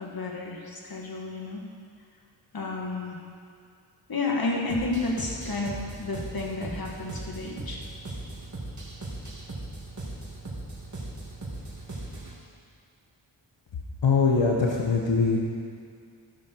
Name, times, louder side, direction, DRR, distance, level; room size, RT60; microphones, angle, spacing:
voice 1, 0.0-1.6 2.5-3.2 4.1-7.8, left 3 dB, 55° left, -1 dB, 2.0 m, -31 dB
sound 1, 4.7-12.4, right 2 dB, 40° right, 2.8 m, -38 dB
voice 2, 14.0-15.4, left 4 dB, 80° left, -2 dB, 1.5 m, -22 dB
14.5 x 12.0 x 4.7 m, 2.2 s
wide cardioid pair, 130°, 43 cm